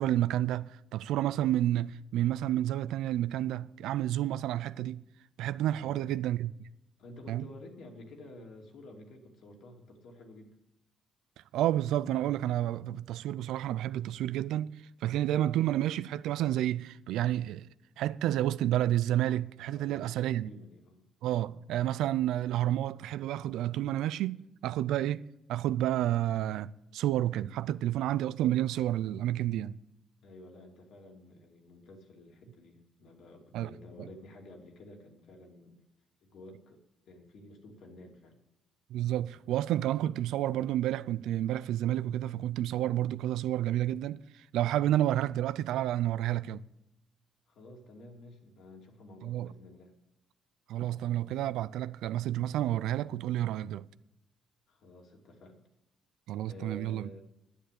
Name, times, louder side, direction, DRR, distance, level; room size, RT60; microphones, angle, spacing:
voice 1, 0.0-5.0 5.4-6.7 7.3-7.5 11.5-14.7 15.0-17.7 18.0-20.5 21.2-29.8 33.5-33.7 34.0-34.1 38.9-46.6 49.2-49.5 50.7-53.9 56.3-57.1, right 13 dB, 85° right, 0.4 m, -30 dB
voice 2, 5.8-6.2 7.0-10.5 19.7-21.0 30.2-35.8 36.2-36.8 37.1-38.3 47.5-49.9 54.7-55.6 56.4-57.2, left 2 dB, 75° left, 2.7 m, -51 dB
10.0 x 9.4 x 8.4 m
cardioid pair, 90°, 0 cm